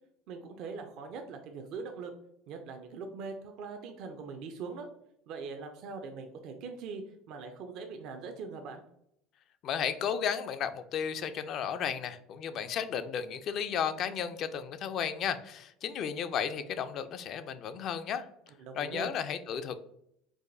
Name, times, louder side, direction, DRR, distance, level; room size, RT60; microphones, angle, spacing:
voice 1, 0.3-2.1 2.5-4.9 5.3-8.8 18.6-19.1, right 4 dB, 65° right, 4 dB, 0.4 m, -42 dB
voice 2, 9.6-18.3 18.8-19.7, left 8 dB, 55° left, 10 dB, 0.4 m, -34 dB
4.7 x 2.2 x 2.5 m, 0.75 s
hypercardioid pair, 80°, 0 cm